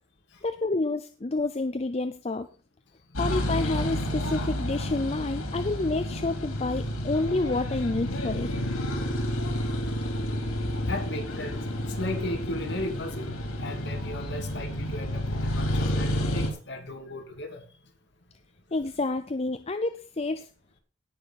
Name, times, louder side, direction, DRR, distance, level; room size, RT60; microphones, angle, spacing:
voice 1, 0.4-2.5 3.2-8.5 17.1-17.2 18.7-20.5, left 2 dB, 30° left, 9 dB, 0.5 m, -29 dB
sound 1, 3.1-16.5, equal, 85° left, 3.4 m, -30 dB
voice 2, 10.8-17.6, left 1 dB, 55° left, 3 dB, 2.5 m, -36 dB
17.5 x 5.9 x 4.3 m, 0.35 s
head